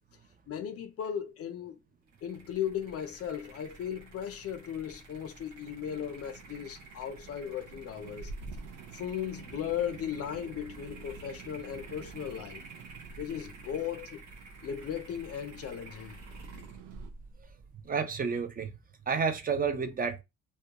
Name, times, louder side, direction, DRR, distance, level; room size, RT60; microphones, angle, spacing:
voice 1, 0.5-1.8 2.2-8.3 8.9-12.6 13.2-14.2 14.6-16.2, left 9 dB, 50° left, 0.4 m, -37 dB
sound 1, 2.1-18.4, right 3 dB, 75° right, 0.9 m, -51 dB
sound 2, 5.6-17.1, right 5 dB, 90° right, 0.5 m, -49 dB
voice 2, 17.9-18.7 19.1-20.2, right 5 dB, 30° right, 0.4 m, -30 dB
2.2 x 2.2 x 2.8 m
cardioid pair, 90°, 30 cm